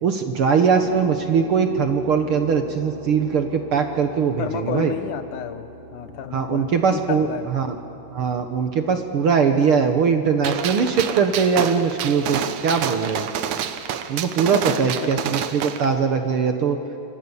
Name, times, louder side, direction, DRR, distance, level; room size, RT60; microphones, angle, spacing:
voice 1, 0.0-4.9 6.3-7.7 8.1-13.3 14.1-16.8, right 6 dB, 55° right, 6 dB, 1.7 m, -21 dB
sound 1, 0.8-14.3, right 1 dB, 60° left, 6.1 m, -43 dB
voice 2, 4.4-7.5 14.5-15.1, left 9 dB, 80° left, 10 dB, 2.6 m, -31 dB
Gunshot gunfire, 10.4-15.9, right 9 dB, 75° right, 2.3 m, -28 dB
27.5 x 26.0 x 7.1 m, 2.7 s
omnidirectional pair, 3.6 m